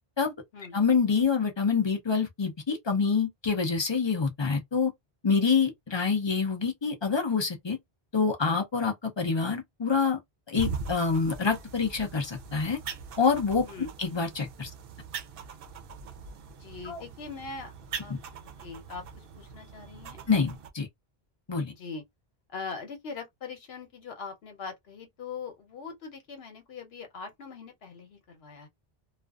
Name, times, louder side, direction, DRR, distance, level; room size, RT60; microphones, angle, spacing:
voice 1, 0.7-4.9 5.2-7.8 8.1-10.2 10.5-12.8 13.2-13.7 14.0-14.7 16.9-17.0 20.3-20.9 21.5-21.7, left 5 dB, 35° left, 0.5 m, -26 dB
sound 1, 10.6-20.7, right 5 dB, 65° right, 0.7 m, -41 dB
voice 2, 16.6-17.7 18.0-18.1 18.6-20.2 21.7-22.0 22.5-28.7, left 4 dB, 80° left, 1.1 m, -41 dB
2.4 x 2.3 x 2.3 m
omnidirectional pair, 1.0 m